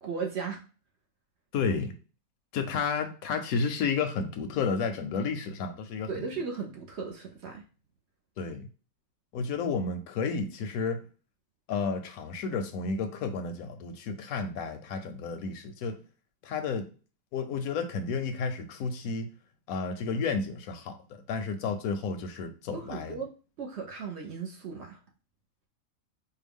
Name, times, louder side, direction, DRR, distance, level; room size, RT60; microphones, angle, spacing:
voice 1, 0.0-0.6 6.1-7.6 22.7-23.3 23.6-25.0, right 5 dB, 55° right, 1 dB, 0.8 m, -36 dB
voice 2, 1.5-2.0 2.5-6.2 8.4-8.7 9.3-11.1 11.7-16.0 16.4-16.9 17.3-19.3 19.7-23.2, left 5 dB, 75° left, 8 dB, 1.0 m, -31 dB
4.6 x 2.3 x 3.5 m, 0.35 s
omnidirectional pair, 1.6 m